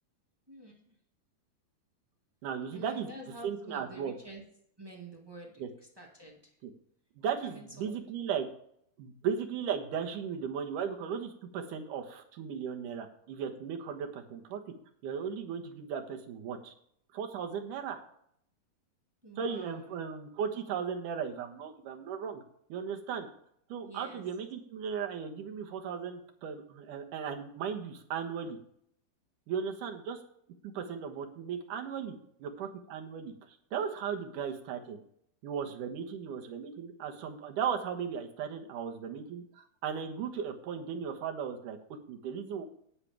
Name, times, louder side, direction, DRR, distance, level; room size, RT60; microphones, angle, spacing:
voice 1, 0.5-0.9 2.7-4.4 4.8-6.5 7.4-8.0 19.2-19.9 23.8-24.2, right 1 dB, 25° right, -2 dB, 0.5 m, -48 dB
voice 2, 2.4-3.1 3.4-4.1 5.6-5.7 6.6-6.7 7.2-8.5 9.0-14.6 15.0-16.7 17.1-18.0 19.4-22.4 22.7-23.3 23.7-28.6 29.5-30.2 30.6-35.0 35.4-41.8 42.1-42.7, right 7 dB, 65° right, 4 dB, 2.6 m, -36 dB
19.0 x 6.9 x 3.5 m, 0.68 s
omnidirectional pair, 4.5 m